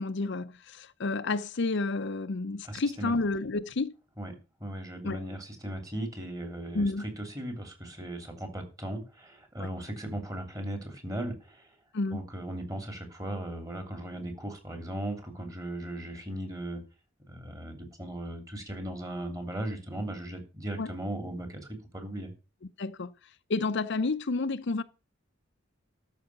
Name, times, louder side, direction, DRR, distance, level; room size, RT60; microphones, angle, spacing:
voice 1, 0.0-3.9 5.0-5.2 6.7-7.1 9.6-9.7 11.9-12.2 20.8-20.9 22.8-23.1 23.5-24.8, left 3 dB, 60° left, 0.7 m, -30 dB
voice 2, 2.6-3.1 4.2-4.3 4.6-11.7 12.1-16.8 17.3-22.3, right 1 dB, 20° right, 3.0 m, -37 dB
13.0 x 5.7 x 7.0 m
head